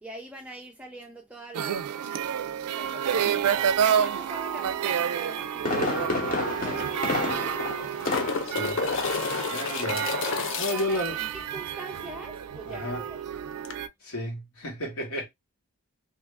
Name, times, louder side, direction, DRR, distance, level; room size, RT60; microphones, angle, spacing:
voice 1, 0.0-1.9 2.7-3.4 3.8-7.7 10.7-13.2, right 1 dB, 5° right, 0.4 m, -43 dB
sound 1, 1.5-13.9, right 8 dB, 90° right, 0.4 m, -30 dB
Fireworks, 5.2-8.6 8.9-9.3 9.6-9.7, left 2 dB, 35° left, 0.9 m, -30 dB
sound 2, 5.9-6.0 6.2-6.3 7.4-11.1 13.7-13.8, left 5 dB, 60° left, 0.5 m, -30 dB
voice 2, 8.4-8.8 9.2-11.2 12.7-13.0 14.0-15.2, left 1 dB, 75° left, 1.5 m, -33 dB
2.7 x 2.6 x 3.2 m
head